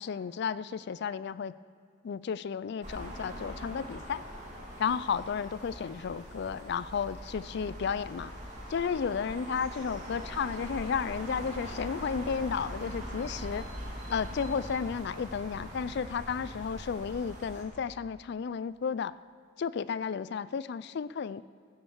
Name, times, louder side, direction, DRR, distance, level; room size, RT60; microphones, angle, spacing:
voice 1, 0.0-1.5 2.0-4.2 4.8-8.3 8.7-13.7 14.1-19.1 19.6-21.4, left 6 dB, 55° left, 17 dB, 0.3 m, -33 dB
sound 1, 2.8-17.6, equal, 35° right, 3.0 m, -42 dB
15.5 x 8.8 x 7.1 m, 2.4 s
head